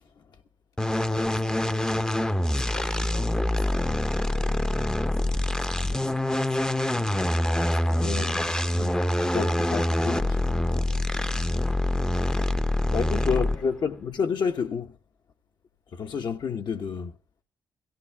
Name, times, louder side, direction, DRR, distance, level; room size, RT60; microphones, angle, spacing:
sound 1, 0.8-13.7, left 1 dB, 10° left, 0.7 m, -25 dB
voice 1, 1.0-4.7 5.0-7.2 7.7-9.8 13.0-13.8, left 6 dB, 85° left, 4.8 m, -51 dB
voice 2, 8.0-8.9 9.3-10.7 12.9-15.0 15.9-17.1, left 6 dB, 65° left, 1.3 m, -30 dB
17.0 x 15.5 x 3.5 m
supercardioid pair, 55°, 8 cm